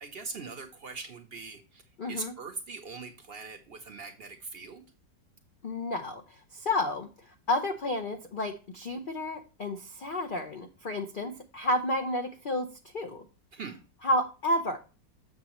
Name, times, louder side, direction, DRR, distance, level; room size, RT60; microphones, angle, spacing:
voice 1, 0.0-1.8 2.1-4.8 13.5-13.8, right 4 dB, 55° right, 7 dB, 0.6 m, -41 dB
voice 2, 2.0-2.3 5.6-7.1 7.5-12.7 12.9-13.2 14.0-14.8, left 1 dB, 90° left, 4 dB, 0.4 m, -31 dB
7.0 x 6.5 x 3.0 m, 0.34 s
omnidirectional pair, 1.9 m